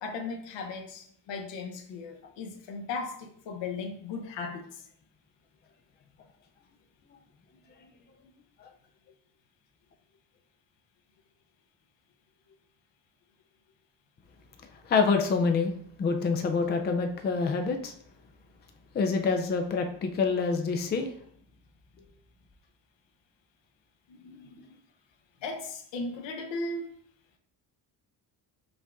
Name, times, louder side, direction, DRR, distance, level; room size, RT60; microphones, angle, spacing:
voice 1, 0.0-4.9 24.1-24.8 25.4-27.0, left 3 dB, 75° left, 3 dB, 0.9 m, -37 dB
voice 2, 14.8-15.7 16.0-17.9 18.9-21.1 22.0-22.1, left 4 dB, 25° left, 5 dB, 0.4 m, -26 dB
5.3 x 2.5 x 3.5 m, 0.62 s
cardioid pair, 135°, 44 cm